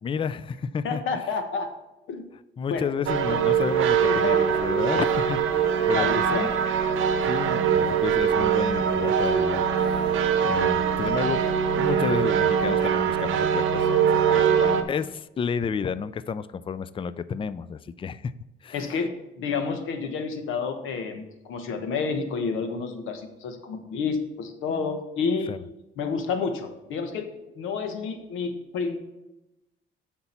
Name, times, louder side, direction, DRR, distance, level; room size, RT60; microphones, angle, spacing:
voice 1, 0.0-1.0 2.6-6.5 7.2-11.4 11.8-14.2 14.9-18.3 18.6-18.9 25.5-25.6, left 6 dB, 25° left, 16 dB, 0.4 m, -31 dB
voice 2, 0.8-1.7 2.1-2.2 2.7-2.9 4.0-4.6 5.9-6.6 14.3-14.9 18.7-25.5 26.0-29.0, left 5 dB, 85° left, 7 dB, 1.1 m, -30 dB
sound 1, 3.1-14.8, right 7 dB, 80° right, 0.8 m, -22 dB
7.9 x 5.9 x 4.3 m, 0.96 s
cardioid pair, 90°, 20 cm